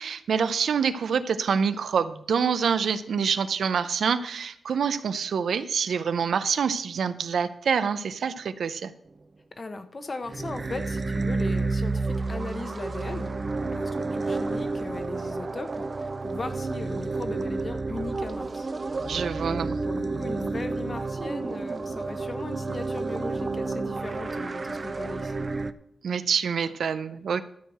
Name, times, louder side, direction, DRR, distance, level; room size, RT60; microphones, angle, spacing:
voice 1, 0.0-8.9 19.1-19.8 26.0-27.4, right 6 dB, 80° right, 12 dB, 0.6 m, -26 dB
voice 2, 9.5-13.3 13.6-18.7 19.3-25.5, left 3 dB, 35° left, 9 dB, 0.9 m, -38 dB
sound 1, 10.3-25.7, right 3 dB, 30° right, 0.5 m, -30 dB
13.0 x 4.7 x 7.9 m, 0.72 s
wide cardioid pair, 145°, 0 cm